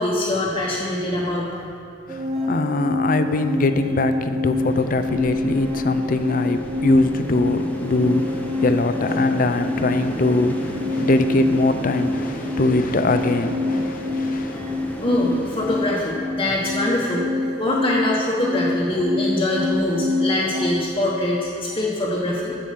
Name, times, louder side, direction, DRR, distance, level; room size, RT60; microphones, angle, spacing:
voice 1, 0.0-1.6 14.5-14.6 15.0-17.3 17.6-22.6, left 1 dB, 30° left, -6 dB, 1.2 m, -23 dB
voice 2, 2.1-14.6, left 2 dB, 50° left, 9 dB, 0.5 m, -22 dB
sound 1, 2.1-20.7, left 2 dB, 40° right, 0.9 m, -26 dB
sound 2, 4.6-16.1, left 1 dB, 10° left, 0.8 m, -33 dB
14.5 x 5.0 x 5.9 m, 2.7 s
head